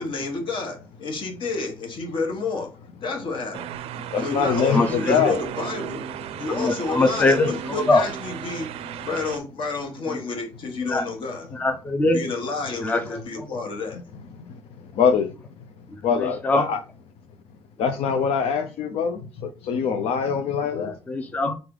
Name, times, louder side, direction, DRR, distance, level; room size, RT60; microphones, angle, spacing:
voice 1, 0.0-2.7 3.0-3.6 4.2-6.0 6.4-8.7 9.0-11.5 12.1-14.0, left 3 dB, 55° left, 1.2 m, -30 dB
sound 1, 3.5-9.4, right 8 dB, 85° right, 0.4 m, -35 dB
voice 2, 4.1-5.4 14.5-15.3 16.0-16.8 17.8-21.0, left 6 dB, 85° left, 0.5 m, -24 dB
voice 3, 4.7-5.3 6.6-8.0 10.9-11.0 11.5-12.2 12.8-13.2 16.2-16.7 20.8-21.5, left 2 dB, 15° left, 0.4 m, -22 dB
3.5 x 3.3 x 3.8 m
cardioid pair, 160°, 10 cm